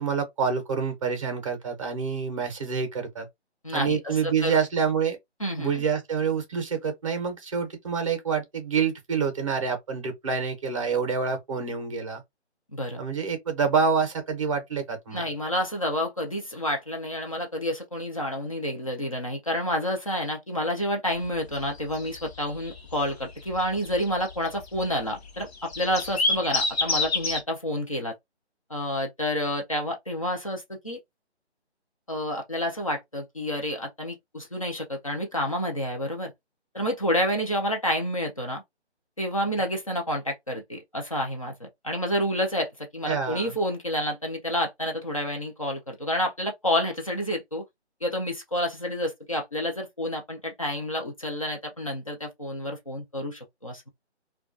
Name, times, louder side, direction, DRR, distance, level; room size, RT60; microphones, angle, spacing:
voice 1, 0.0-3.3 3.7-5.2 5.6-12.2 13.0-15.2 43.1-43.5, right 6 dB, 30° right, 0.6 m, -27 dB
voice 2, 3.6-4.6 5.4-5.9 12.7-13.0 15.1-28.1 28.7-31.0 32.1-36.3 36.7-38.6 39.2-47.6 48.0-53.9, equal, 30° left, 0.4 m, -29 dB
sound 1, 21.2-27.4, left 3 dB, 60° left, 0.8 m, -29 dB
2.2 x 2.2 x 2.4 m
figure-of-eight pair, 155°, 35 cm